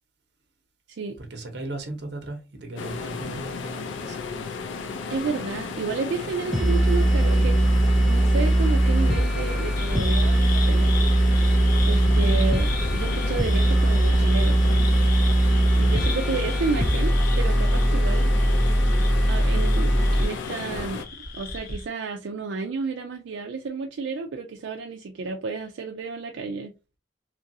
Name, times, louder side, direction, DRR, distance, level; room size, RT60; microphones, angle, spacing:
voice 1, 1.2-4.3 15.9-16.2, right 2 dB, 65° right, 0.9 m, -37 dB
sound 1, 2.8-21.0, left 5 dB, 90° left, 0.5 m, -34 dB
voice 2, 5.1-7.7 8.1-10.9 11.8-14.6 15.7-18.5 19.3-21.0 21.3-26.7, right 4 dB, 85° right, 0.4 m, -31 dB
sound 2, 6.5-20.2, right 1 dB, ahead, 0.4 m, -20 dB
sound 3, 9.8-21.9, left 3 dB, 55° left, 0.7 m, -37 dB
3.0 x 2.5 x 2.6 m
head